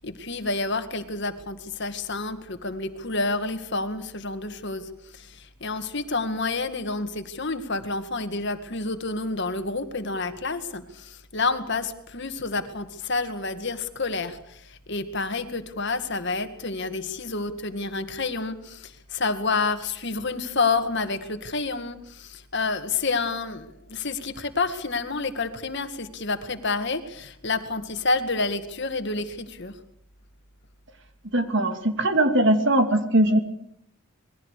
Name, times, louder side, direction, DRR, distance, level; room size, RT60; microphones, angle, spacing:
voice 1, 0.0-29.7, left 3 dB, 50° left, 8 dB, 2.1 m, -29 dB
voice 2, 31.3-33.4, right 1 dB, 55° right, 7 dB, 2.7 m, -20 dB
27.0 x 21.0 x 6.7 m, 0.70 s
head